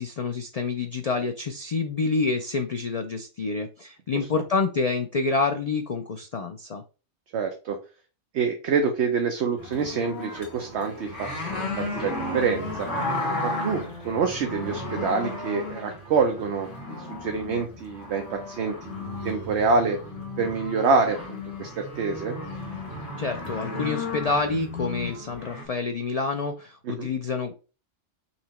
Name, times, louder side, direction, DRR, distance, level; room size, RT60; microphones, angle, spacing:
voice 1, 0.0-6.8 23.2-27.5, left 4 dB, 85° left, 6 dB, 0.3 m, -28 dB
voice 2, 7.3-7.8 8.3-12.9 13.4-20.0 20.4-22.4 26.8-27.1, right 4 dB, 65° right, 4 dB, 0.9 m, -26 dB
sound 1, 9.6-25.6, left 2 dB, 55° left, 2.1 m, -34 dB
4.2 x 2.9 x 4.2 m, 0.34 s
omnidirectional pair, 1.3 m